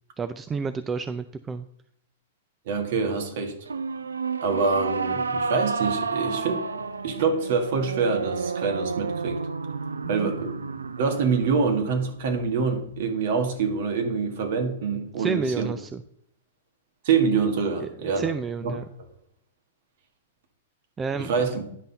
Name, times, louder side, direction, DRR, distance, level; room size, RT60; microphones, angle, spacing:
voice 1, 0.2-1.7 10.0-10.3 15.2-16.0 17.8-18.8 21.0-21.6, right 5 dB, 20° right, 11 dB, 0.4 m, -31 dB
voice 2, 2.7-3.5 4.4-6.6 7.0-9.4 10.1-10.6 11.0-15.7 17.0-18.3 18.6-18.8 21.2-21.6, right 5 dB, 55° right, 4 dB, 1.7 m, -25 dB
sound 1, 3.7-13.0, right 4 dB, 80° right, 0.4 m, -31 dB
10.5 x 5.5 x 3.9 m, 0.70 s
figure-of-eight pair, 110°, 0 cm